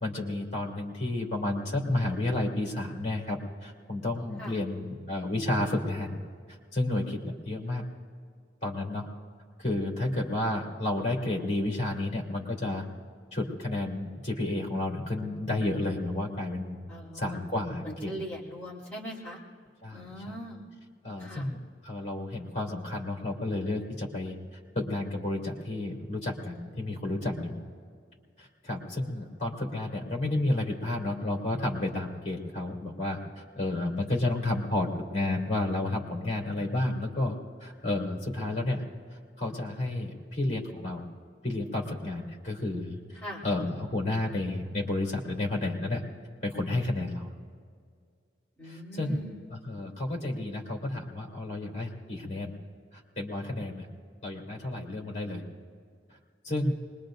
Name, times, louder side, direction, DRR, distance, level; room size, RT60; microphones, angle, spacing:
voice 1, 0.0-6.2 6.7-7.8 8.6-9.1 9.6-12.8 13.3-16.8 17.1-18.1 19.8-20.4 21.0-24.3 24.7-27.6 28.4-38.8 39.4-41.1 41.4-43.0 43.4-46.0 46.4-47.3 48.6-49.2 49.5-52.5 53.2-53.9 54.2-55.4 56.4-56.7, left 2 dB, 35° left, -2 dB, 2.9 m, -31 dB
voice 2, 16.9-17.4 17.8-19.4 19.9-20.6 21.2-21.5 43.2-43.4 48.6-49.4, equal, 10° left, -8 dB, 3.0 m, -41 dB
25.5 x 21.5 x 2.6 m, 2.1 s
head